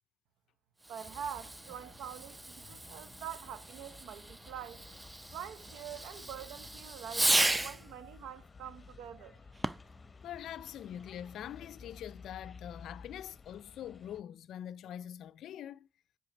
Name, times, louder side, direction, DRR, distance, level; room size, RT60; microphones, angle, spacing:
Fireworks, 0.8-7.9 9.5-10.0, right 2 dB, 15° right, 0.5 m, -35 dB
voice 1, 0.9-4.8 5.3-9.4, right 9 dB, 90° right, 0.6 m, -45 dB
sound 1, 1.0-14.2, left 4 dB, 30° left, 0.8 m, -54 dB
voice 2, 10.2-15.9, left 10 dB, 75° left, 0.4 m, -44 dB
7.6 x 5.1 x 5.9 m
cardioid pair, 90°, 0 cm